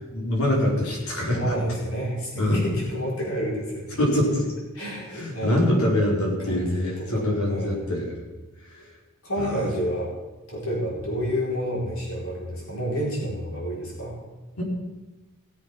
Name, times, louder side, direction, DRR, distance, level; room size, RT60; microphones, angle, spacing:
voice 1, 0.1-1.4 2.4-2.8 4.0-4.5 5.1-8.2 8.7-8.8 9.4-9.7 14.6-14.7, left 1 dB, 90° left, -3 dB, 4.6 m, -24 dB
voice 2, 1.3-4.0 4.7-5.7 6.5-7.8 9.2-10.1 10.5-14.1, equal, 70° left, -4 dB, 5.2 m, -29 dB
18.5 x 7.7 x 6.0 m, 1.1 s
head